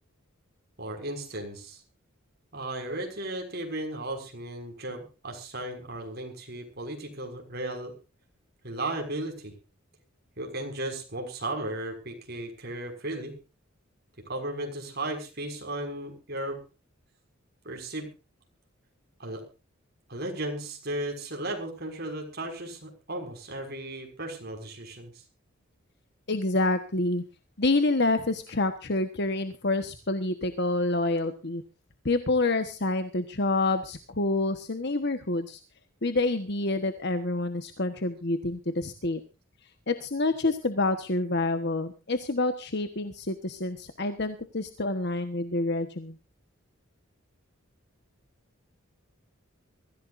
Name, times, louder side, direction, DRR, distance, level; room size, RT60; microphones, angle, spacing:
voice 1, 0.8-1.8 2.5-7.9 8.6-9.5 10.4-13.3 14.3-16.6 17.6-18.1 19.2-19.4 20.1-25.1, right 1 dB, 50° right, 3 dB, 6.0 m, -35 dB
voice 2, 26.3-27.2 27.6-31.6 32.0-35.6 36.0-39.2 39.9-46.2, left 2 dB, 50° left, 8 dB, 1.3 m, -27 dB
23.5 x 15.5 x 2.6 m, 0.33 s
head